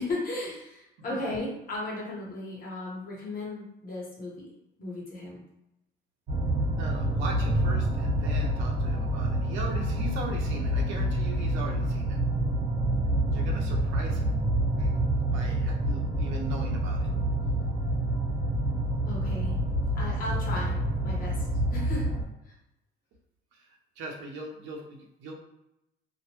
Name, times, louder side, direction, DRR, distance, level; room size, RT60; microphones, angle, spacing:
voice 1, 0.0-4.5 4.8-5.4 19.1-19.6 19.9-20.7 21.0-22.1 22.4-22.5, left 2 dB, 50° left, -4 dB, 1.1 m, -35 dB
sound 1, 6.3-22.2, right 1 dB, 45° right, 0.9 m, -27 dB
voice 2, 6.8-12.2 13.3-14.3 14.8-17.1 24.0-25.3, right 2 dB, 85° right, 0 dB, 0.7 m, -40 dB
2.5 x 2.1 x 2.9 m, 0.87 s
cardioid pair, 140°, 19 cm